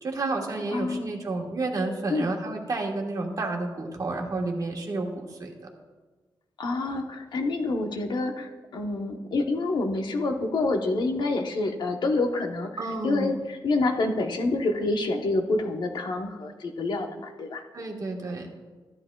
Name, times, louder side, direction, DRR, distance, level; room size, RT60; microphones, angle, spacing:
voice 1, 0.0-5.5 12.8-13.3 17.7-18.5, right 3 dB, 50° right, 1 dB, 1.5 m, -30 dB
voice 2, 0.7-1.1 2.1-2.3 6.6-12.7 13.0-17.6, left 2 dB, 70° left, 4 dB, 1.0 m, -27 dB
13.5 x 10.5 x 2.3 m, 1.3 s
wide cardioid pair, 110°, 8 cm